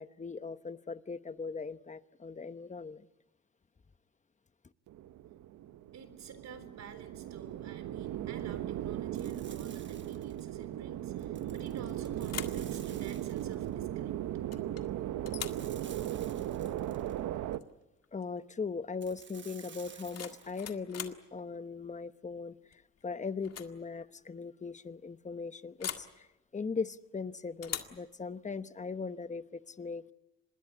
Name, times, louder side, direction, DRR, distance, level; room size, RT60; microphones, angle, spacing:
voice 1, 0.0-3.1 18.1-22.6 23.0-26.3 26.5-30.1, left 4 dB, 25° left, 1.0 m, -39 dB
sound 1, 4.9-17.6, right 12 dB, 80° right, 1.0 m, -37 dB
voice 2, 5.9-14.2 14.7-14.8, right 6 dB, 60° right, 3.9 m, -50 dB
sound 2, 9.1-10.5 11.2-13.7 15.5-17.2 19.0-20.7, right 6 dB, 40° right, 1.3 m, -54 dB
sound 3, 11.6-11.9 12.2-12.7 14.5-14.9 15.2-15.7 17.5-17.7 18.0-18.4 19.8-21.2 22.7-23.0 23.4-23.8 24.0-24.1 25.8-26.1 27.6-28.0, left 9 dB, 55° left, 1.9 m, -42 dB
25.5 x 20.5 x 8.4 m
cardioid pair, 90°, 30 cm